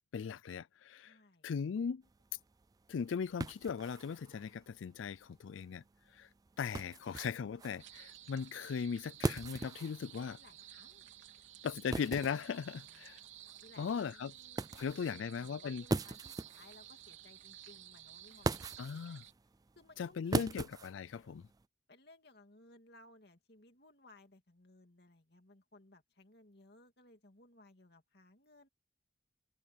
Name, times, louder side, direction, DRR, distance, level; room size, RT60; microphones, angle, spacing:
voice 1, 0.1-1.1 1.4-2.0 2.9-5.8 6.1-6.3 6.6-10.4 11.6-13.2 13.8-14.3 14.7-15.8 18.8-19.2 20.0-21.4, left 6 dB, 85° left, 0.4 m, -38 dB
voice 2, 1.0-1.5 10.1-11.1 11.4-11.5 12.5-13.1 13.6-19.2 19.8-20.7 21.9-28.7, left 2 dB, 55° left, 2.6 m, -62 dB
sound 1, 2.0-21.6, right 2 dB, 20° right, 0.3 m, -42 dB
sound 2, 7.8-19.3, right 12 dB, 80° right, 3.4 m, -55 dB
head